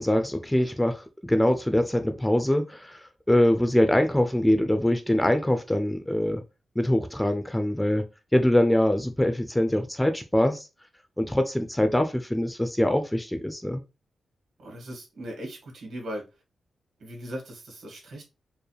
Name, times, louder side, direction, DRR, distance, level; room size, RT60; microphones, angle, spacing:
voice 1, 0.0-6.4 6.8-8.0 8.3-10.7 11.2-13.8, left 1 dB, 5° left, 0.4 m, -23 dB
voice 2, 14.6-16.2 17.0-18.2, equal, 70° right, 1.9 m, -38 dB
4.5 x 2.4 x 3.2 m
wide cardioid pair, 175°, 0 cm